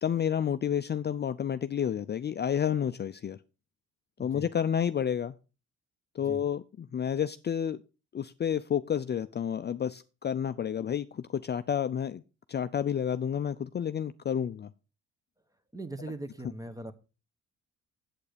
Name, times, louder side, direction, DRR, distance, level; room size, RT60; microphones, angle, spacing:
voice 1, 0.0-3.4 4.2-5.3 6.1-7.8 8.1-12.2 12.5-14.7, left 8 dB, 35° left, 11 dB, 0.5 m, -30 dB
voice 2, 15.7-16.9, right 2 dB, 10° right, 12 dB, 1.1 m, -40 dB
8.4 x 8.2 x 5.1 m, 0.33 s
cardioid pair, 90°, 30 cm